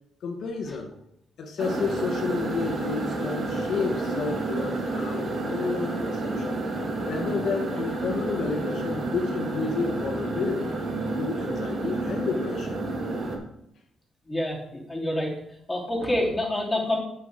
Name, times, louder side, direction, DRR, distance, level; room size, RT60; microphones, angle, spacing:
voice 1, 0.2-0.9 1.4-6.6 7.0-10.8 11.2-12.8, left 5 dB, 65° left, 2 dB, 1.2 m, -31 dB
sound 1, 1.6-13.4, right 2 dB, 50° right, 2.0 m, -30 dB
voice 2, 14.3-15.3 15.7-17.0, left 1 dB, 10° left, -4 dB, 3.2 m, -27 dB
8.3 x 5.6 x 5.1 m, 0.80 s
cardioid pair, 90°, 0 cm